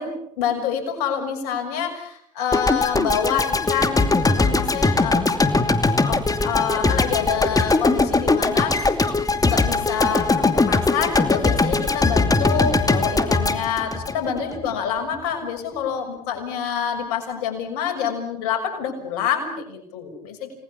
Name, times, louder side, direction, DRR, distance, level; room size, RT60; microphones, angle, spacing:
voice 1, 0.0-5.3 6.0-9.0 9.4-20.5, left 7 dB, 70° left, 5 dB, 6.4 m, -27 dB
sound 1, 2.5-14.7, left 3 dB, 20° left, 2.6 m, -20 dB
30.0 x 20.0 x 7.1 m, 0.71 s
hypercardioid pair, 65°, 20 cm